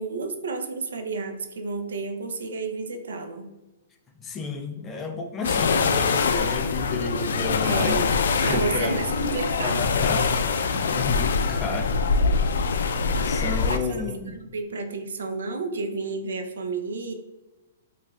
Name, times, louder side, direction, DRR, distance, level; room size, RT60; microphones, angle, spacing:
voice 1, 0.0-3.5 7.6-8.1 8.4-9.9 13.7-13.8 14.2-17.1, right 3 dB, 90° right, 6 dB, 0.5 m, -31 dB
voice 2, 4.2-8.1 8.5-8.9 9.6-11.9 13.2-14.4, left 3 dB, 15° left, 2 dB, 0.4 m, -31 dB
sound 1, 5.4-13.8, left 5 dB, 80° left, 0.4 m, -24 dB
4.8 x 2.4 x 2.3 m, 1.1 s
hypercardioid pair, 165°, 0 cm